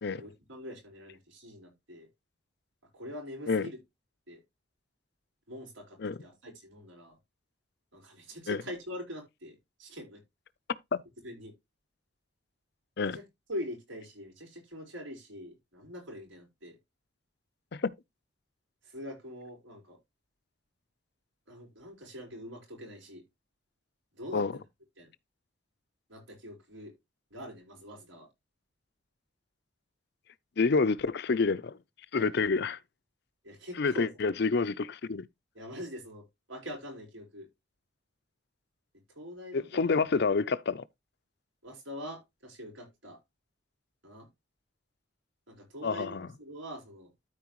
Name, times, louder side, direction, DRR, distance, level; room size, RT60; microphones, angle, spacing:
voice 1, 0.1-2.1 2.9-3.8 4.3-4.4 5.5-7.2 7.9-10.2 11.2-11.5 13.0-13.2 13.5-16.8 18.8-20.0 21.5-23.2 24.1-24.6 25.0-25.1 26.1-26.9 27.3-28.3 32.2-32.3 33.4-34.1 35.5-37.5 39.1-40.0 41.6-43.2 44.0-44.3 45.5-47.1, equal, 85° right, 5.1 m, -44 dB
voice 2, 30.6-31.8 32.1-32.8 33.8-35.3 39.5-40.8 45.8-46.3, left 4 dB, 60° left, 0.5 m, -28 dB
13.0 x 4.5 x 3.0 m
head